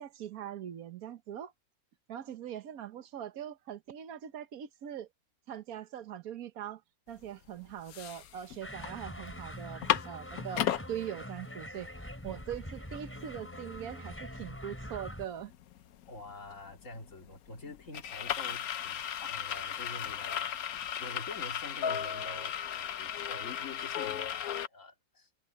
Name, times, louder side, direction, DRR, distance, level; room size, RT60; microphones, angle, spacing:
voice 1, 0.0-1.5 2.1-5.1 5.5-6.8 7.1-11.9 12.2-15.5, right 10 dB, 75° right, 1.4 m, -42 dB
sound 1, 7.2-7.3 7.7-8.9 9.3-9.4 9.6-10.8 11.4-11.5 11.8-24.7, left 10 dB, 75° left, 1.2 m, -36 dB
sound 2, 8.6-15.3, equal, 10° left, 4.6 m, -44 dB
voice 2, 16.1-25.3, left 2 dB, 55° left, 3.0 m, -47 dB
omnidirectional pair, 1.6 m